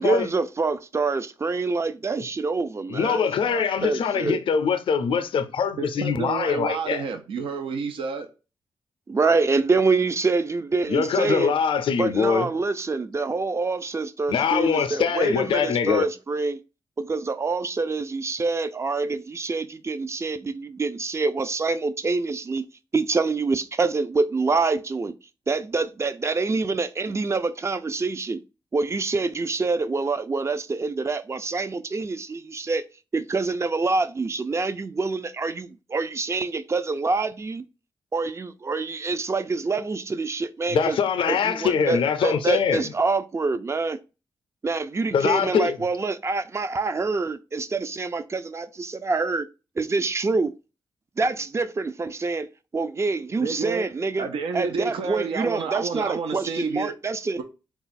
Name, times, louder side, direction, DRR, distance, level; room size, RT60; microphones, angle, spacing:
voice 1, 0.0-4.4 9.1-11.5 12.0-16.6 17.0-22.7 22.9-25.1 25.5-28.4 28.7-32.8 33.1-37.6 38.1-41.0 41.3-44.0 44.6-49.5 49.8-50.5 51.2-54.3 54.5-57.4, right 3 dB, 30° right, 0.4 m, -26 dB
voice 2, 2.9-7.0 10.8-12.5 14.3-16.1 40.7-42.9 45.1-45.8, left 6 dB, 75° left, 0.5 m, -23 dB
voice 3, 5.8-8.3 53.4-53.9 54.2-57.0, right 5 dB, 85° right, 0.6 m, -30 dB
3.8 x 2.4 x 4.0 m
cardioid pair, 70°, 9 cm